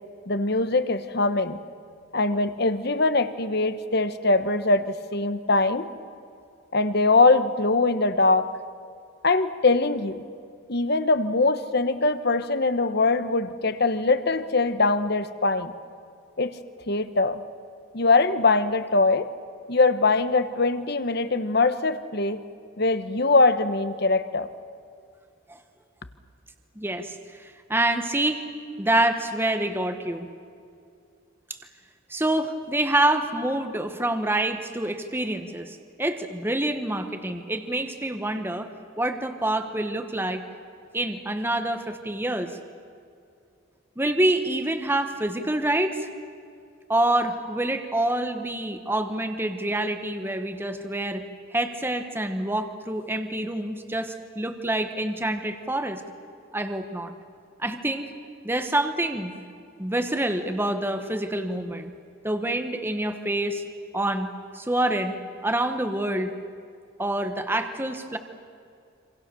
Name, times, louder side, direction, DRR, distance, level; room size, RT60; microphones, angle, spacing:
voice 1, 0.3-1.6 2.1-5.9 6.7-8.5 9.2-10.2 10.7-15.7 16.4-16.6 16.9-17.4 17.9-19.3 19.7-22.5 22.8-24.5, left 3 dB, 50° left, 11 dB, 1.1 m, -22 dB
voice 2, 26.8-28.4 28.8-30.3 32.1-38.7 39.0-40.4 40.9-42.6 44.0-46.1 46.9-51.2 51.5-56.0 56.5-57.1 57.6-58.1 58.4-59.3 59.8-61.9 62.2-63.6 63.9-66.3 67.0-68.2, right 1 dB, 10° right, 7 dB, 1.2 m, -27 dB
27.0 x 26.5 x 7.0 m, 2.4 s
head